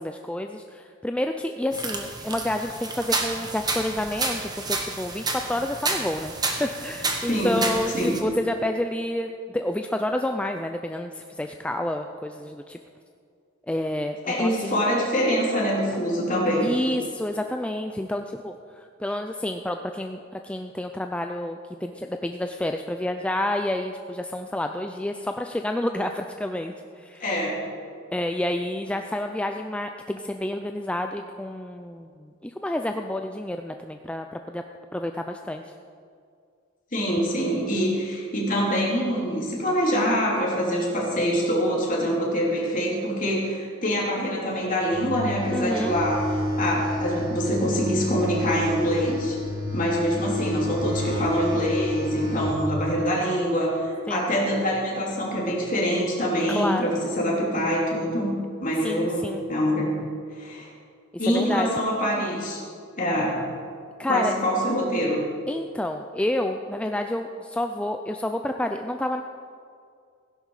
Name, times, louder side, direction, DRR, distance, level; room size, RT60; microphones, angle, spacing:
voice 1, 0.0-6.3 6.6-12.8 13.7-14.8 16.6-27.2 28.1-34.6 34.9-35.7 45.5-46.0 54.1-54.3 56.5-57.0 58.8-59.4 61.2-61.7 64.0-64.3 65.5-69.2, left 1 dB, 5° left, 5 dB, 0.4 m, -29 dB
sound 1, 1.7-8.2, right 3 dB, 20° right, 1.3 m, -30 dB
voice 2, 14.2-16.7 27.2-27.6 36.9-46.2 46.6-49.4 49.7-58.3 58.6-59.9 60.4-60.7 61.2-62.6 63.0-63.4 64.1-65.2, equal, 40° left, -3 dB, 3.3 m, -25 dB
sound 2, 44.9-52.5, left 1 dB, 65° right, 4.0 m, -29 dB
16.0 x 11.0 x 4.8 m, 2.3 s
head